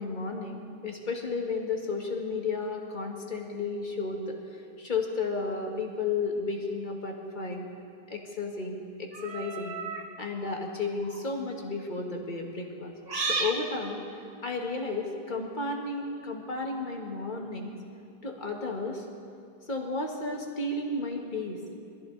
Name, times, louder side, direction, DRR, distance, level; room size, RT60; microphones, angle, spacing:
voice 1, 0.0-7.7 8.1-9.8 10.2-12.9 13.2-14.0 14.4-17.8 18.2-19.1 19.7-21.6, left 3 dB, 50° left, 1 dB, 1.8 m, -33 dB
sound 1, 9.1-10.1 10.9-11.2 13.1-13.6, right 3 dB, 70° right, 1.5 m, -32 dB
22.5 x 14.5 x 4.0 m, 2.5 s
omnidirectional pair, 1.0 m